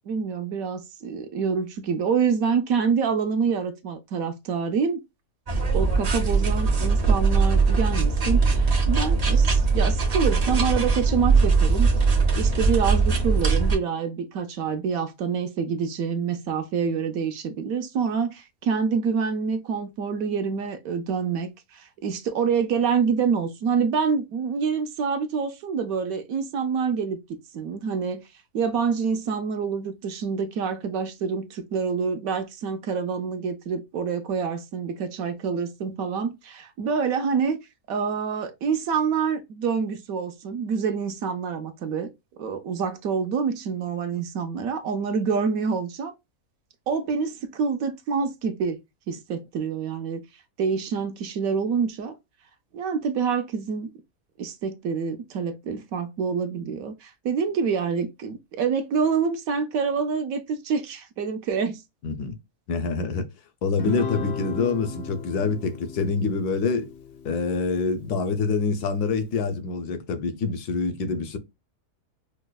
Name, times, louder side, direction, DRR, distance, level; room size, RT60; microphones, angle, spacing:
voice 1, 0.1-5.0 5.7-11.9 12.3-27.2 27.5-28.2 28.5-37.6 37.9-42.1 42.4-46.1 46.9-48.8 49.1-50.2 50.6-52.2 52.7-53.9 54.4-61.8, right 6 dB, 70° right, 0.9 m, -27 dB
sound 1, 5.5-13.8, right 4 dB, 50° right, 0.4 m, -21 dB
voice 2, 62.0-62.4 62.7-63.3 63.6-66.9 67.2-71.4, left 4 dB, 80° left, 1.2 m, -26 dB
Guitar, 63.8-68.4, left 3 dB, 60° left, 0.7 m, -36 dB
4.9 x 2.0 x 2.2 m
omnidirectional pair, 1.7 m